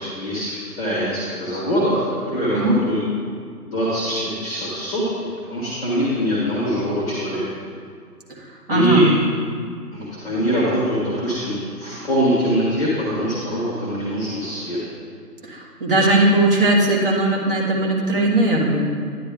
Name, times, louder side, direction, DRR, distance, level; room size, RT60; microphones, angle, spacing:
voice 1, 0.0-2.0 2.3-3.0 3.6-7.4 8.7-9.1 9.9-14.8, equal, 5° left, -6 dB, 1.0 m, -23 dB
voice 2, 8.3-9.1 15.4-18.8, right 2 dB, 35° right, -4 dB, 1.3 m, -19 dB
10.0 x 10.0 x 2.4 m, 2.1 s
figure-of-eight pair, 135°, 48 cm